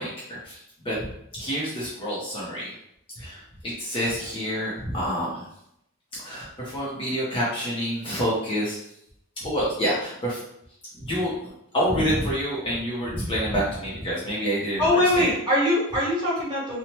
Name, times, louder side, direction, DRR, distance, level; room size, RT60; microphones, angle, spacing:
voice 1, 0.0-2.7 3.2-5.4 6.2-8.8 9.4-10.4 10.9-11.3 11.7-15.3, equal, 25° left, -6 dB, 0.5 m, -28 dB
voice 2, 14.8-16.8, left 1 dB, 20° right, -9 dB, 1.2 m, -22 dB
2.8 x 2.0 x 2.9 m, 0.78 s
head